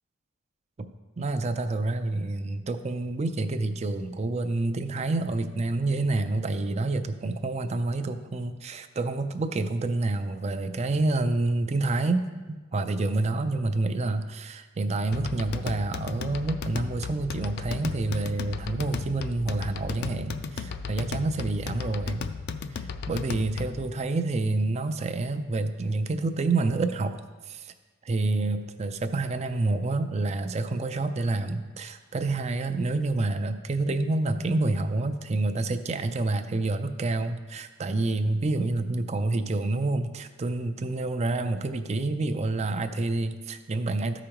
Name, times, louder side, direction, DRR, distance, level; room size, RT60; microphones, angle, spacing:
voice 1, 1.2-22.2 22.8-27.2 27.5-27.7 28.0-44.2, right 2 dB, 35° right, 9 dB, 0.4 m, -28 dB
sound 1, 15.1-23.9, left 5 dB, 55° left, 0.4 m, -35 dB
13.5 x 5.0 x 3.0 m, 1.3 s
head